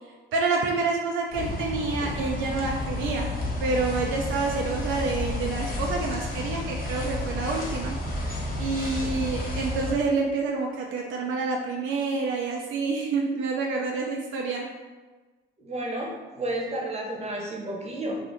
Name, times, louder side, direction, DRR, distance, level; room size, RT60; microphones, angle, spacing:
voice 1, 0.3-3.3 3.6-8.0 8.6-14.7, right 4 dB, 80° right, 0 dB, 0.4 m, -28 dB
sound 1, 1.3-9.9, left 2 dB, 45° left, 0.9 m, -31 dB
voice 2, 15.6-18.2, right 1 dB, 35° right, -1 dB, 0.8 m, -32 dB
2.6 x 2.5 x 3.5 m, 1.3 s
cardioid pair, 90°, 20 cm